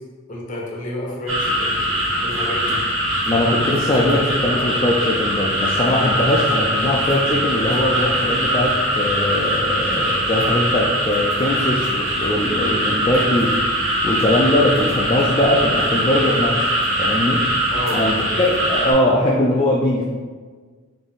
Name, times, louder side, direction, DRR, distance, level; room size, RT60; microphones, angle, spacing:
voice 1, 0.3-2.8 17.7-18.4, left 1 dB, 40° left, -3 dB, 0.9 m, -30 dB
sound 1, 1.3-18.9, equal, 75° right, 1.1 m, -21 dB
voice 2, 3.3-13.6 14.0-16.7 17.0-17.4 17.9-20.0, left 1 dB, 25° left, -5 dB, 0.3 m, -20 dB
3.9 x 2.6 x 3.5 m, 1.5 s
head